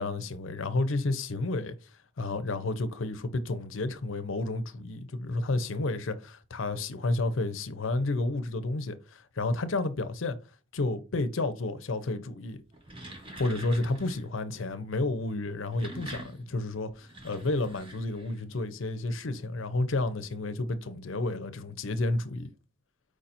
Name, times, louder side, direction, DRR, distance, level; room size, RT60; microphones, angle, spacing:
voice 1, 0.0-1.7 2.2-10.4 10.7-12.6 13.4-22.5, left 2 dB, 65° left, 0.6 m, -31 dB
sound 1, 12.6-14.3 15.5-18.5, right 1 dB, 25° right, 1.1 m, -45 dB
4.9 x 4.2 x 2.6 m
head